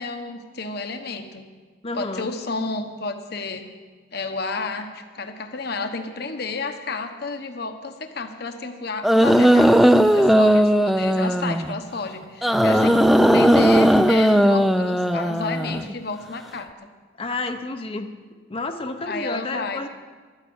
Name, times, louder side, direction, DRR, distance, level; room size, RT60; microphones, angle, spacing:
voice 1, 0.0-1.4 1.9-3.6 4.1-13.0 13.3-16.7 19.0-19.8, left 3 dB, 55° left, 6 dB, 1.0 m, -31 dB
voice 2, 1.8-2.3 12.7-13.1 17.2-18.1 18.5-19.9, left 2 dB, 30° left, 6 dB, 0.7 m, -30 dB
sound 1, 9.0-11.7 12.4-15.9, equal, ahead, 0.4 m, -17 dB
12.5 x 9.8 x 8.7 m, 1.4 s
head